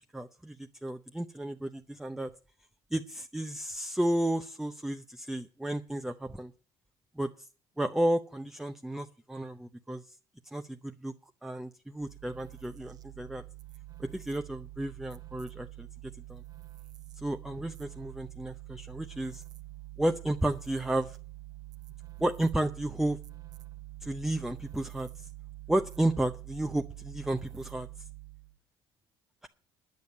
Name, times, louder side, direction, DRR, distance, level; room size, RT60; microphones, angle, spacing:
voice 1, 0.0-2.3 2.9-6.5 7.2-7.5 7.8-10.2 10.5-11.1 11.4-13.4 14.0-15.9 16.3-16.4 17.2-19.4 20.0-21.2 22.2-23.2 24.0-25.3 25.7-27.9, right 1 dB, 5° right, 7 dB, 0.6 m, -32 dB
sound 1, 12.0-28.6, right 18 dB, 40° right, 0.8 m, -46 dB
10.5 x 7.0 x 9.3 m, 0.40 s
cardioid pair, 125°, 10 cm